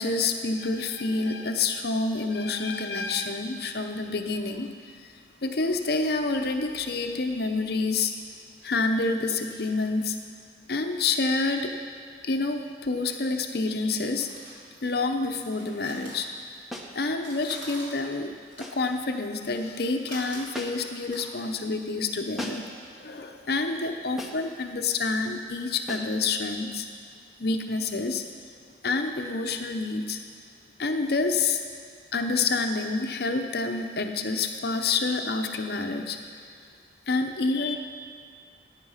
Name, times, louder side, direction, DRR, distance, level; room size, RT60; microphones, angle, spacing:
voice 1, 0.0-8.1 8.6-10.2 10.7-11.7 12.2-14.3 14.8-16.7 16.9-18.3 18.6-22.7 23.0-26.9 27.4-28.2 28.8-30.2 30.8-31.6 32.1-36.2 37.1-37.8, left 3 dB, 55° left, 5 dB, 0.7 m, -28 dB
sound 1, 13.4-16.8 17.1-22.6, right 1 dB, 85° right, 3.4 m, -47 dB
sound 2, 16.7-17.0 18.6-18.9 20.5-21.0 22.4-22.8 24.2-24.5 25.9-26.2, equal, ahead, 1.0 m, -38 dB
14.5 x 9.7 x 5.6 m, 2.1 s
head